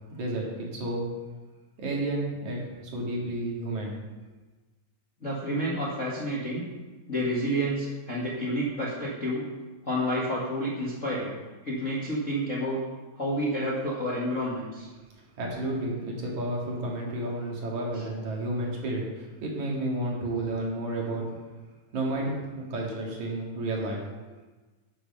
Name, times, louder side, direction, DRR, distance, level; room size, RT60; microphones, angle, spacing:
voice 1, 0.1-1.1 1.8-4.0 15.4-21.4 21.9-24.0, right 1 dB, 60° right, -2 dB, 3.4 m, -31 dB
voice 2, 5.2-6.7 7.1-9.5 9.8-11.4 11.6-12.8 13.1-14.9, equal, 30° left, -6 dB, 1.6 m, -29 dB
12.5 x 7.4 x 5.5 m, 1.2 s
omnidirectional pair, 4.0 m